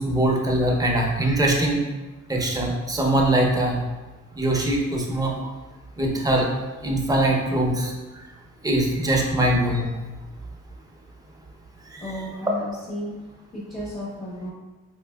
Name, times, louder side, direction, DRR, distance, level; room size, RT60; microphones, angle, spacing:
voice 1, 0.0-1.8 2.3-3.8 4.3-5.5 6.0-6.5 6.8-7.9 8.6-9.9 11.9-12.1, right 1 dB, 10° right, -1 dB, 0.6 m, -22 dB
voice 2, 12.0-13.2 13.5-14.5, left 1 dB, 20° left, -6 dB, 0.9 m, -33 dB
4.3 x 2.7 x 2.2 m, 1.2 s
cardioid pair, 90°, 30 cm